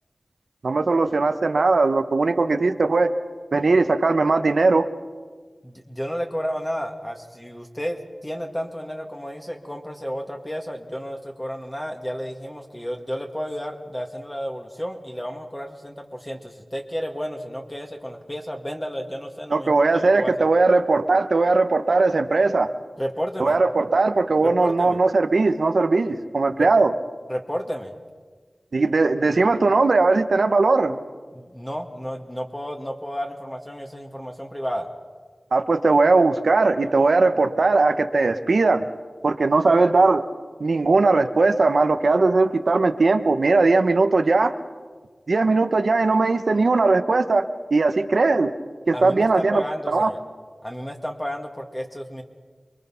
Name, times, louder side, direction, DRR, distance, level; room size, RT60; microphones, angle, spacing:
voice 1, 0.6-3.1 3.5-4.8 19.5-22.7 23.4-26.9 28.7-31.0 35.5-38.8 39.2-40.2 40.6-44.5 45.3-47.5 47.7-48.5 48.9-50.1, right 3 dB, 80° right, 7 dB, 1.0 m, -19 dB
voice 2, 5.6-19.7 20.1-20.5 23.0-23.6 24.4-25.0 26.6-26.7 27.3-27.9 31.3-34.9 48.9-50.2 50.6-52.2, equal, 15° left, 2 dB, 2.2 m, -32 dB
28.5 x 22.0 x 5.8 m, 1.5 s
wide cardioid pair, 55°, 0 cm